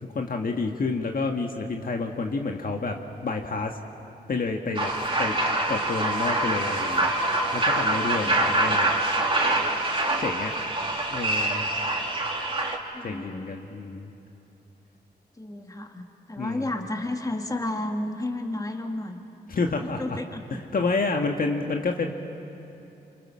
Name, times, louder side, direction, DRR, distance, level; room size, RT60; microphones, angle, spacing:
voice 1, 0.1-3.8 4.3-4.9 5.2-5.3 5.7-7.1 7.5-8.9 10.2-10.5 11.1-11.7 13.0-14.1 16.4-16.7 19.5-20.2 20.5-22.1, left 3 dB, 55° left, 3 dB, 1.6 m, -29 dB
sound 1, 4.7-12.8, right 2 dB, 30° right, 2.6 m, -25 dB
voice 2, 12.9-13.5 15.4-19.2 19.8-20.4, left 1 dB, 20° left, 4 dB, 1.9 m, -32 dB
27.5 x 25.5 x 6.3 m, 2.8 s
cardioid pair, 70°, 18 cm